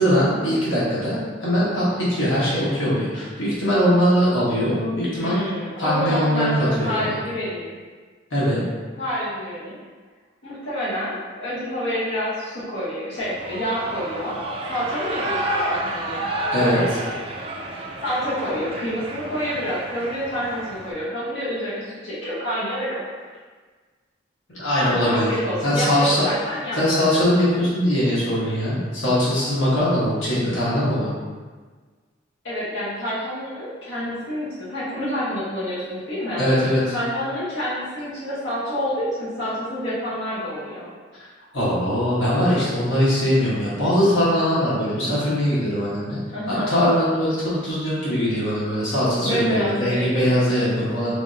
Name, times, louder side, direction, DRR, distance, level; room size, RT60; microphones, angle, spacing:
voice 1, 0.0-5.4 5.8-7.1 8.3-8.6 16.5-17.0 24.5-26.3 26.7-31.1 36.4-36.9 41.5-46.2 46.5-51.1, equal, 90° left, -8 dB, 1.2 m, -21 dB
voice 2, 5.2-7.7 9.0-9.8 10.4-14.4 14.7-16.2 18.0-23.0 25.0-26.8 32.4-36.4 36.9-40.9 46.3-46.7 49.2-50.6, equal, 65° left, -10 dB, 1.0 m, -28 dB
Shout / Cheering, 13.2-20.9, right 1 dB, 30° right, 0.3 m, -30 dB
3.4 x 3.1 x 2.6 m, 1.4 s
head